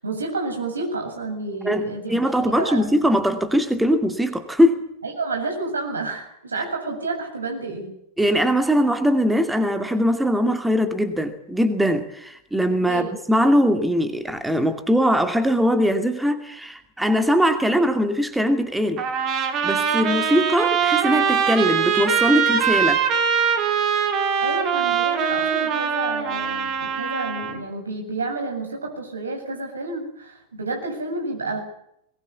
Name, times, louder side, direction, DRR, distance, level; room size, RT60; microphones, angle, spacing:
voice 1, 0.0-2.2 2.5-2.9 5.0-7.9 12.9-13.1 24.4-31.6, right 3 dB, 75° right, 3 dB, 7.5 m, -30 dB
voice 2, 1.6-4.9 8.2-19.0 19.4-23.0, equal, 5° right, 7 dB, 2.4 m, -21 dB
Trumpet, 19.0-27.6, right 7 dB, 35° right, 4.0 m, -22 dB
22.0 x 20.5 x 8.4 m, 0.75 s
figure-of-eight pair, 90°, 0 cm